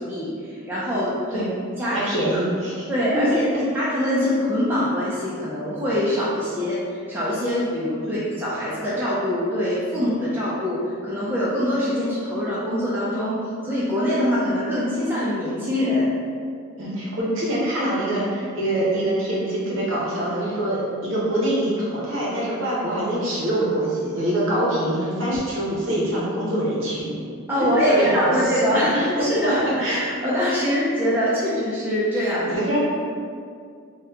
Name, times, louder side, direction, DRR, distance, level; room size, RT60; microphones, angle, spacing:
voice 1, 0.0-1.5 1.8-2.0 2.3-2.4 2.9-3.3 3.6-16.1 27.5-32.6, equal, 10° right, -9 dB, 0.3 m, -24 dB
voice 2, 1.9-2.9 3.5-3.6 8.0-8.2 16.8-27.2 27.9-28.2 28.7-29.0 29.4-29.5 29.8-30.0 32.4-32.8, right 1 dB, 60° right, -6 dB, 0.8 m, -24 dB
2.8 x 2.2 x 3.5 m, 2.3 s
head